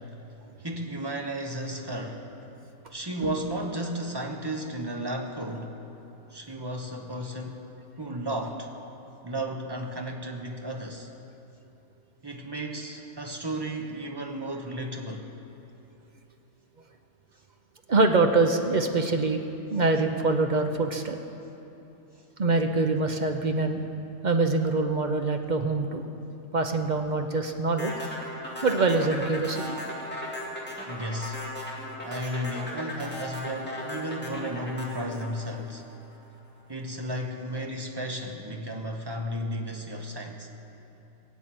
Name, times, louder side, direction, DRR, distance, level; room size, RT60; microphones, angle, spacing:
voice 1, 0.6-2.3 2.9-5.7 6.3-7.6 8.0-8.7 9.2-11.1 12.2-15.3 30.9-31.4 32.0-35.9 36.7-40.5, right 1 dB, 20° right, 2 dB, 1.1 m, -34 dB
voice 2, 17.9-19.4 19.7-21.2 22.4-23.8 24.2-26.0 26.5-27.9 28.6-29.8, right 3 dB, 40° right, 5 dB, 0.7 m, -24 dB
sound 1, 27.8-36.1, left 1 dB, 10° left, 2.3 m, -37 dB
18.5 x 8.4 x 7.7 m, 2.9 s
omnidirectional pair, 1.4 m